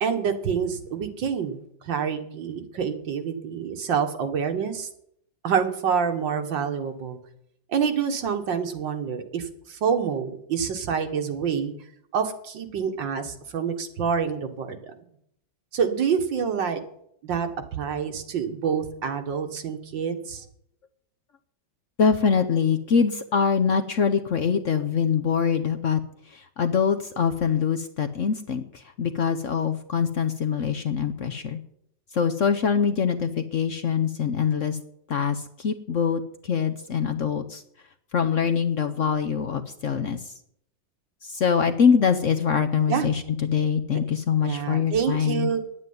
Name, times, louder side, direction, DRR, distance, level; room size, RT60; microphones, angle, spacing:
voice 1, 0.0-4.9 5.4-7.2 7.7-11.7 12.1-14.9 15.7-16.8 17.2-20.4 42.9-43.1 44.4-45.6, right 7 dB, 80° right, 6 dB, 2.1 m, -27 dB
voice 2, 22.0-26.0 26.3-31.6 32.1-34.8 35.1-37.6 38.1-40.3 41.2-45.5, left 6 dB, 55° left, 7 dB, 0.9 m, -24 dB
9.5 x 9.3 x 9.5 m, 0.71 s
omnidirectional pair, 2.0 m